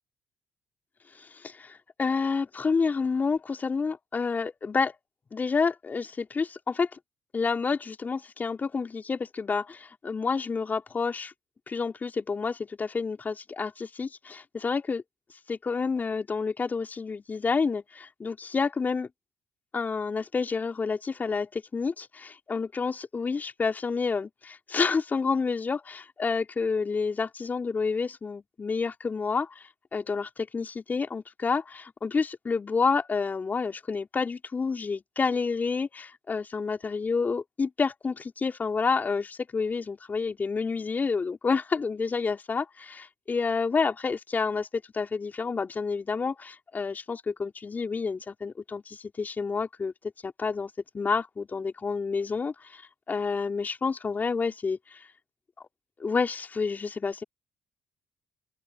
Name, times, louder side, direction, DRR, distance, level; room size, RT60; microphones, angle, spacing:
voice 1, 1.2-4.9 5.3-6.9 7.3-11.3 11.7-15.0 15.5-19.1 19.7-49.9 50.2-52.8 53.1-54.8 56.0-57.2, left 4 dB, 35° left, 4.5 m, -29 dB
open air
hypercardioid pair, 55°, 5 cm